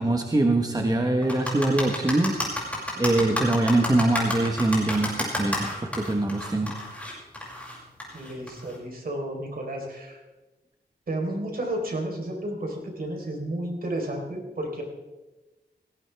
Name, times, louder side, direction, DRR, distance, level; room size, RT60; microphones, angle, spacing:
voice 1, 0.0-2.7 3.0-6.7, right 2 dB, 20° right, 3 dB, 1.3 m, -23 dB
sound 1, 1.2-8.8, left 1 dB, 10° left, 6.1 m, -30 dB
voice 2, 8.1-10.2 11.1-14.8, right 1 dB, 60° right, 1 dB, 4.1 m, -32 dB
18.5 x 16.5 x 3.5 m, 1.1 s
wide cardioid pair, 90°, 17 cm